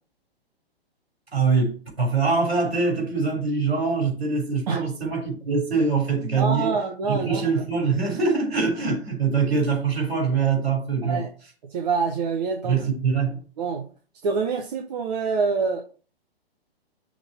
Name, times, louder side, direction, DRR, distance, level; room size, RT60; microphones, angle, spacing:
voice 1, 1.3-6.7 7.1-11.3 12.6-13.4, right 4 dB, 70° right, 3.1 m, -23 dB
voice 2, 6.4-7.6 11.0-11.3 11.7-12.8 13.6-13.9 14.2-15.8, right 5 dB, 40° right, 1.0 m, -26 dB
6.3 x 3.7 x 5.6 m
figure-of-eight pair, 120°, 31 cm